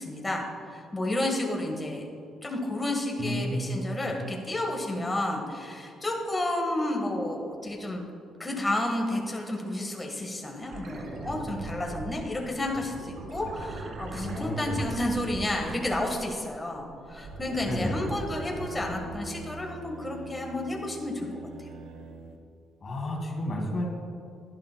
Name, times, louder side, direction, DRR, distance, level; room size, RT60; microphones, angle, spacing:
voice 1, 0.0-2.1 2.4-8.0 8.4-21.7, left 1 dB, 20° left, 1 dB, 1.4 m, -31 dB
voice 2, 3.2-4.0 14.2-14.8 17.7-18.0 22.8-23.8, left 1 dB, 45° left, 0 dB, 2.1 m, -31 dB
sound 1, 10.6-16.4 16.8-19.3 21.7-21.8, right 2 dB, 65° right, 1.9 m, -40 dB
sound 2, 17.1-22.4, right 2 dB, 85° right, 0.8 m, -42 dB
11.5 x 11.0 x 2.2 m, 2.5 s
cardioid pair, 90°, 0 cm